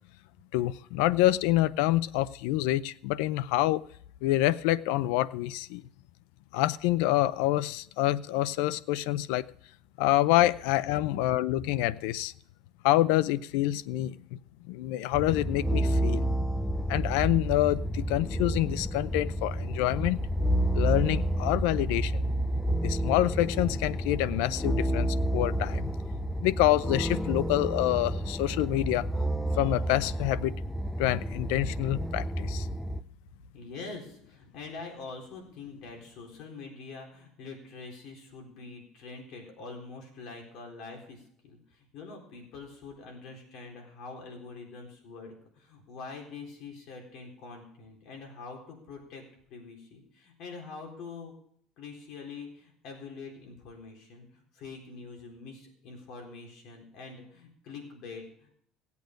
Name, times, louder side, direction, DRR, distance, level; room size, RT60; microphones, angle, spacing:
voice 1, 0.5-3.8 4.2-5.8 6.5-9.5 10.0-12.3 12.8-14.4 14.7-16.3 16.9-20.2 20.7-22.3 22.8-25.9 26.4-29.1 29.6-30.5 31.0-32.7, left 15 dB, 90° left, 18 dB, 0.5 m, -27 dB
sound 1, 15.1-33.0, right 1 dB, 5° left, 0.5 m, -30 dB
voice 2, 33.5-49.2 49.5-51.3 51.8-58.5, left 4 dB, 55° left, 0 dB, 3.9 m, -45 dB
17.5 x 8.4 x 5.1 m, 0.65 s
cardioid pair, 160°, 0 cm